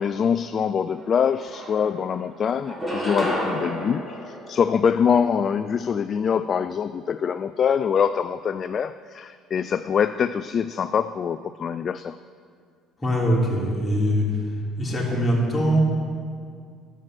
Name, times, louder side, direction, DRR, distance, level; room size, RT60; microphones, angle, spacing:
voice 1, 0.0-12.2, left 7 dB, 45° left, 12 dB, 0.3 m, -24 dB
sound 1, 1.0-1.1 1.4-2.2 2.6-5.2, equal, 10° right, 2.8 m, -31 dB
voice 2, 13.0-14.4 14.8-15.8, equal, 20° left, -4 dB, 3.3 m, -22 dB
10.5 x 7.6 x 6.5 m, 2.1 s
supercardioid pair, 80°, 0 cm